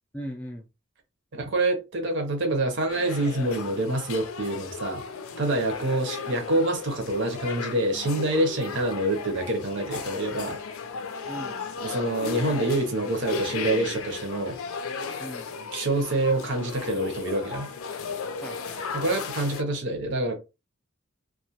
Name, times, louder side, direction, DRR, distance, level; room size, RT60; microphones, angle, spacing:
voice 1, 0.1-0.7 11.3-11.6 15.2-15.5 18.4-19.2, equal, 5° left, 0.3 m, -39 dB
voice 2, 1.3-5.0 5.4-10.6 11.8-14.6 15.7-17.7 18.9-20.4, right 2 dB, 60° right, 0.7 m, -26 dB
sound 1, 2.9-19.6, left 5 dB, 85° left, 0.5 m, -35 dB
2.3 x 2.2 x 2.8 m
head